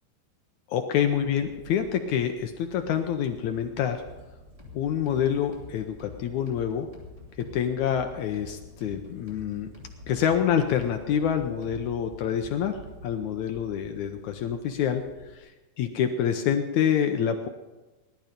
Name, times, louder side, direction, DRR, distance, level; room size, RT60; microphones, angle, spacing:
voice 1, 0.7-4.0 4.7-6.9 7.5-9.7 10.1-17.5, left 8 dB, 75° left, 6 dB, 1.8 m, -27 dB
sound 1, 0.9-15.4, right 2 dB, 40° right, 1.0 m, -51 dB
sound 2, 4.6-12.1, left 4 dB, 10° right, 2.5 m, -47 dB
18.5 x 12.0 x 5.1 m, 1.2 s
omnidirectional pair, 4.1 m